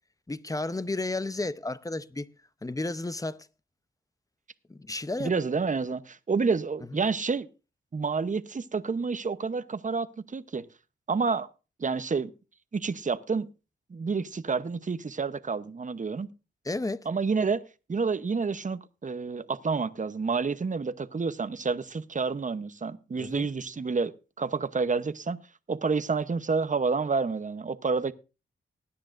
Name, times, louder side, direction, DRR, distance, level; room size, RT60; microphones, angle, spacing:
voice 1, 0.3-2.3 2.6-3.5 4.7-5.3 16.6-17.1 23.2-23.5, left 2 dB, 15° left, 0.7 m, -32 dB
voice 2, 5.2-7.5 7.9-10.6 11.1-11.5 11.8-12.3 12.7-13.5 13.9-16.3 17.1-17.6 17.9-24.1 24.4-25.4 25.7-28.1, right 4 dB, 40° right, 0.8 m, -29 dB
19.5 x 9.9 x 2.6 m
cardioid pair, 65°, 21 cm